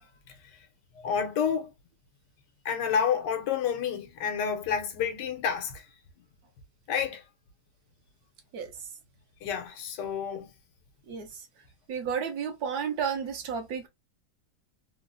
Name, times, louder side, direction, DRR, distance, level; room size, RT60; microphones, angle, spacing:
voice 1, 0.9-1.7 2.6-5.8 6.9-7.2 9.4-10.5, left 7 dB, 85° left, 1.4 m, -29 dB
voice 2, 11.9-13.9, right 7 dB, 70° right, 1.2 m, -32 dB
3.7 x 2.1 x 2.5 m
omnidirectional pair, 1.8 m